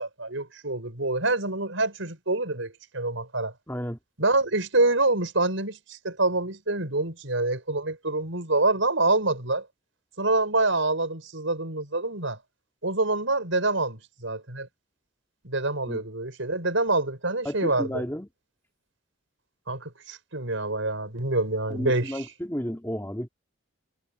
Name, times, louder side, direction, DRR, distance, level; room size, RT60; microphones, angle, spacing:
voice 1, 0.0-3.5 4.2-9.7 10.2-12.4 12.8-14.7 15.4-18.0 19.7-22.2, right 2 dB, 75° right, 5.7 m, -26 dB
voice 2, 3.7-4.0 15.9-16.0 17.4-18.3 21.7-23.3, equal, 10° left, 3.0 m, -32 dB
head